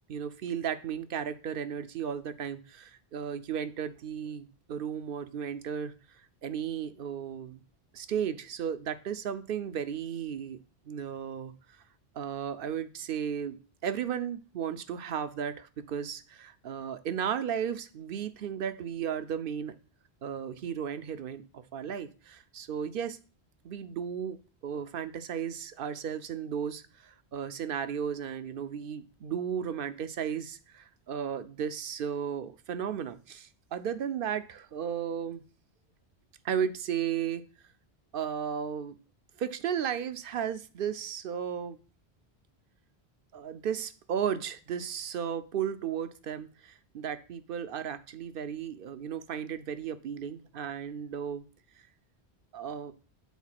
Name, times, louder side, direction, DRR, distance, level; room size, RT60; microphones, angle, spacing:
voice 1, 0.1-5.9 6.4-7.6 7.9-10.6 10.9-11.8 12.1-19.8 20.2-23.2 23.6-35.4 36.4-37.4 38.1-39.0 39.4-41.8 43.3-51.4 52.5-52.9, right 8 dB, 60° right, 12 dB, 0.7 m, -34 dB
7.3 x 4.1 x 5.8 m, 0.35 s
omnidirectional pair, 1.1 m